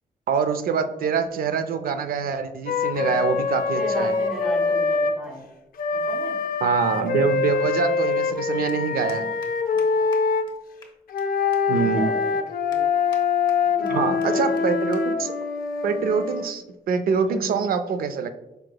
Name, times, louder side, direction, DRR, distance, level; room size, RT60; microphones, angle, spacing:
voice 1, 0.3-4.2 6.6-9.3 11.7-12.1 13.9-15.3 15.8-18.3, right 6 dB, 80° right, 9 dB, 0.4 m, -25 dB
Wind instrument woodwind instrument, 2.7-5.2 5.8-10.5 11.1-16.5, left 5 dB, 75° left, 0.4 m, -24 dB
voice 2, 3.7-5.5 5.9-6.4 9.9-10.0 11.8-12.8 13.8-14.7 17.3-17.6, equal, 5° right, -2 dB, 1.5 m, -34 dB
sound 1, 8.7-8.8 9.1-9.5 9.8-9.9 10.1-10.2 10.5-10.6 10.8-11.2 11.5-11.6 12.1-12.2 12.7-13.2 13.5-13.9 14.2-14.3 14.6-14.7 14.9-15.0 15.3-15.6 16.3-16.6, left 4 dB, 30° left, 1.0 m, -48 dB
4.9 x 4.6 x 2.2 m, 0.96 s
wide cardioid pair, 140°, 15 cm